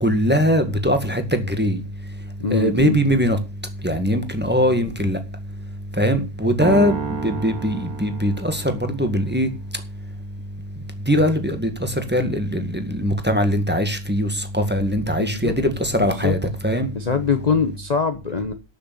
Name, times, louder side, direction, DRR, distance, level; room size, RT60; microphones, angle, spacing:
voice 1, 0.0-1.8 2.5-3.4 3.8-5.2 6.0-7.0 7.2-9.5 11.1-16.4 16.6-16.9, equal, 5° right, 1.7 m, -21 dB
voice 2, 2.4-3.0 15.2-15.5 16.0-16.3 16.9-18.5, left 5 dB, 30° left, 1.0 m, -23 dB
sound 1, 6.6-9.0, right 5 dB, 80° right, 2.1 m, -30 dB
12.0 x 6.8 x 7.1 m
omnidirectional pair, 1.5 m